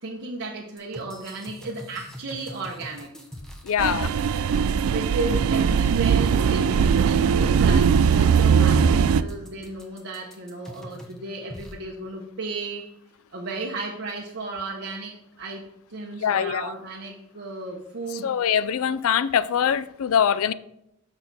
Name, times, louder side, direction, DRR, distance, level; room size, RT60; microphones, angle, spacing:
voice 1, 0.0-3.2 4.8-12.9 13.3-18.3, right 3 dB, 50° right, 0.8 m, -34 dB
sound 1, 0.8-11.2 11.5-11.7, left 1 dB, 5° left, 0.8 m, -42 dB
voice 2, 3.6-4.1 16.2-16.7 18.2-20.5, left 8 dB, 70° left, 0.4 m, -23 dB
sound 2, 3.8-9.2, right 6 dB, 70° right, 0.3 m, -20 dB
6.4 x 6.0 x 4.0 m
head